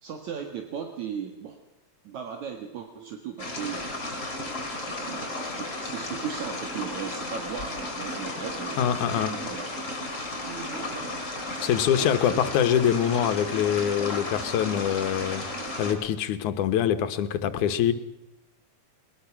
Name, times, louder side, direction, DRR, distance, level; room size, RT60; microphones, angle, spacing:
voice 1, 0.0-1.6 2.0-3.9 4.7-9.7 10.4-11.1 12.0-12.4, right 7 dB, 70° right, 4 dB, 3.0 m, -37 dB
sound 1, 3.4-15.9, left 2 dB, 30° left, 4.5 m, -34 dB
voice 2, 8.8-9.4 11.6-15.4 15.8-17.9, left 9 dB, 75° left, 10 dB, 2.6 m, -24 dB
21.5 x 21.0 x 6.0 m, 0.97 s
omnidirectional pair, 3.5 m